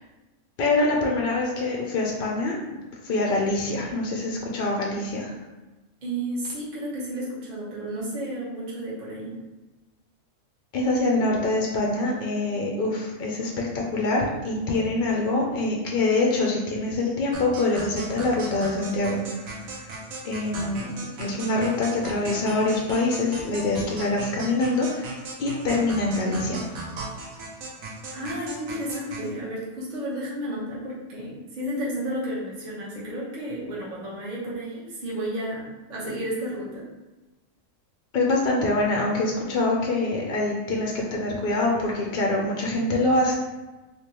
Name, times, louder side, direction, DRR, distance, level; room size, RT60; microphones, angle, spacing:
voice 1, 0.6-5.3 10.7-19.6 20.2-26.7 38.1-43.3, left 2 dB, 65° left, -1 dB, 0.5 m, -25 dB
voice 2, 6.0-9.3 28.1-36.9, right 1 dB, 40° right, -7 dB, 0.8 m, -32 dB
sound 1, 17.3-29.3, right 2 dB, 75° right, 1.1 m, -38 dB
3.4 x 2.8 x 2.9 m, 1.1 s
omnidirectional pair, 1.5 m